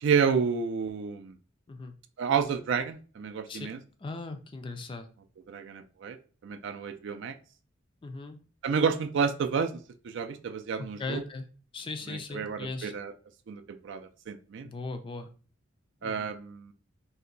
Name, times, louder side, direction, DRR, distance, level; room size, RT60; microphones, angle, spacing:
voice 1, 0.0-1.3 2.2-3.8 5.5-6.2 6.4-7.3 8.6-9.7 10.0-11.2 12.1-13.1 13.5-14.7 16.0-16.7, right 6 dB, 60° right, 8 dB, 0.4 m, -30 dB
voice 2, 4.0-5.1 8.0-8.4 10.8-11.5 11.7-12.9 14.6-15.3 16.0-16.3, left 3 dB, 25° left, 6 dB, 0.3 m, -38 dB
2.7 x 2.1 x 3.8 m, 0.39 s
head